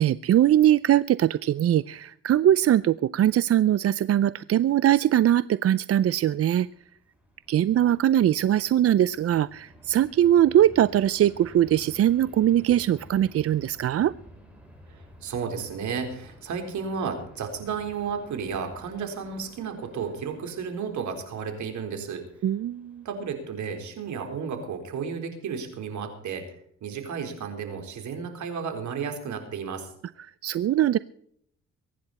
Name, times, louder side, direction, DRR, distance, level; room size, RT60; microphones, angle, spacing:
voice 1, 0.0-6.7 7.5-14.1 22.4-23.0 30.4-31.0, right 11 dB, 50° right, 17 dB, 0.5 m, -21 dB
Fixed-wing aircraft airplane, 6.6-24.4, equal, 5° right, 7.3 m, -52 dB
voice 2, 14.9-22.3 23.0-26.5 26.8-29.9, right 6 dB, 70° right, 6 dB, 4.1 m, -33 dB
23.0 x 10.5 x 4.2 m, 0.68 s
cardioid pair, 90°, 30 cm